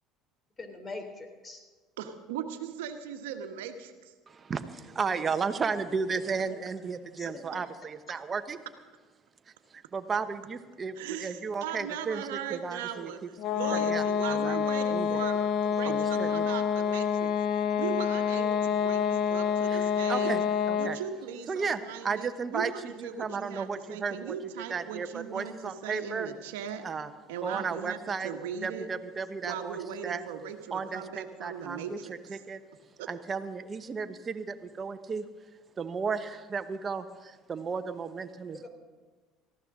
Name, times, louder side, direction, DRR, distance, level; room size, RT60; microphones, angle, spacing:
voice 1, 0.6-1.6 7.2-7.4 38.5-38.7, left 3 dB, 30° left, 5 dB, 3.3 m, -42 dB
voice 2, 2.0-4.1 11.0-13.2 13.5-17.3 17.7-20.3 20.8-26.9 27.3-28.0 28.2-28.9 29.4-32.1 33.0-33.1, right 8 dB, 80° right, 7 dB, 1.3 m, -38 dB
voice 3, 4.3-8.6 9.7-12.2 12.5-13.1 13.7-14.6 14.9-15.2 15.8-16.5 19.7-20.4 20.7-21.0 21.5-26.3 26.8-27.1 27.4-28.3 28.6-29.8 30.0-30.2 30.7-32.6 33.1-35.3 35.8-38.7, right 5 dB, 35° right, 9 dB, 1.1 m, -34 dB
sound 1, 13.4-21.1, left 7 dB, 60° left, 0.8 m, -27 dB
18.5 x 14.5 x 3.8 m, 1.4 s
hypercardioid pair, 75°, 0 cm